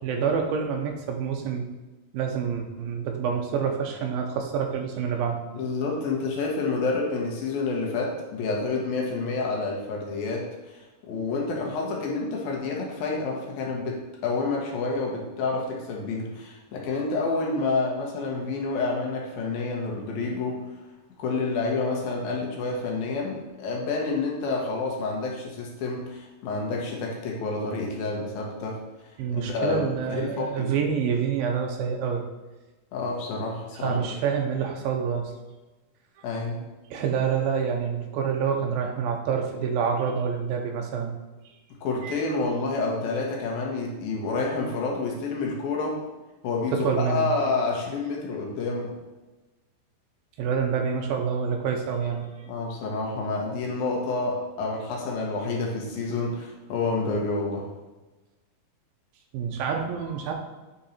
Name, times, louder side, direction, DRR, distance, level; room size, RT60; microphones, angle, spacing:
voice 1, 0.0-1.7 2.1-5.4 29.2-32.3 33.7-35.3 36.9-41.2 42.0-42.1 46.7-47.3 50.4-52.3 59.3-60.3, right 6 dB, 75° right, 3 dB, 2.5 m, -27 dB
voice 2, 5.5-10.8 11.1-20.6 21.2-28.8 29.3-30.7 32.9-34.0 36.2-36.6 41.8-46.0 46.4-48.9 52.5-57.7, left 3 dB, 75° left, -1 dB, 3.0 m, -29 dB
8.3 x 4.6 x 4.3 m, 1.1 s
omnidirectional pair, 4.4 m